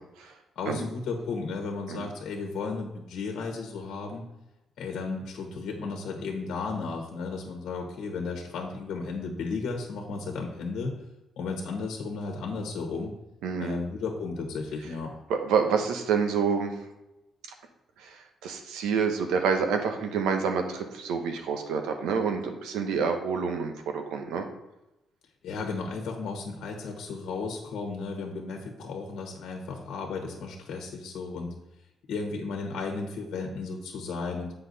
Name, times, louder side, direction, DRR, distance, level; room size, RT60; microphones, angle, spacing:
voice 1, 0.5-4.3 4.8-11.0 11.4-13.1 13.6-15.1 25.4-31.5 32.1-34.5, left 4 dB, 75° left, 2 dB, 1.3 m, -34 dB
voice 2, 13.4-13.8 15.3-16.7 18.0-24.5, right 6 dB, 90° right, 5 dB, 1.0 m, -28 dB
8.1 x 5.7 x 4.1 m, 0.95 s
cardioid pair, 90°, 0 cm